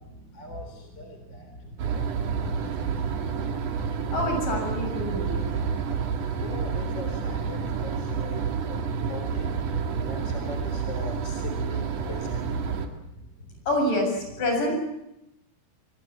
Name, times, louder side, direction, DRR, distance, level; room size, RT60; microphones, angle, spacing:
voice 1, 0.0-1.6 1.9-2.7 6.4-8.4 8.7-9.5 10.1-12.4, left 2 dB, 30° left, 5 dB, 3.9 m, -41 dB
sound 1, 1.8-12.9, right 6 dB, 55° right, 3.1 m, -29 dB
voice 2, 4.1-5.4 13.7-14.7, left 1 dB, 50° left, 3 dB, 8.4 m, -26 dB
26.0 x 21.0 x 8.6 m, 0.87 s
omnidirectional pair, 4.8 m